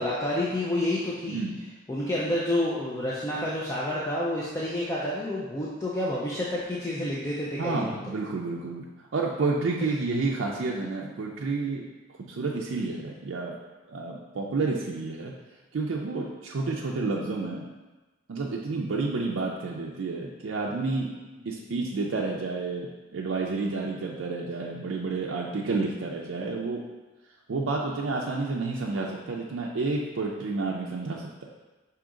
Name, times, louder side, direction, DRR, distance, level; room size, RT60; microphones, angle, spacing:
voice 1, 0.0-1.4 1.9-8.2 9.8-9.9, left 1 dB, 15° left, -6 dB, 0.4 m, -29 dB
voice 2, 7.6-8.8 9.1-11.8 12.3-13.6 13.9-15.3 15.7-17.6 18.3-21.1 21.5-26.8 27.5-31.5, right 3 dB, 70° right, -2 dB, 0.4 m, -30 dB
5.0 x 2.8 x 3.6 m, 1.2 s
head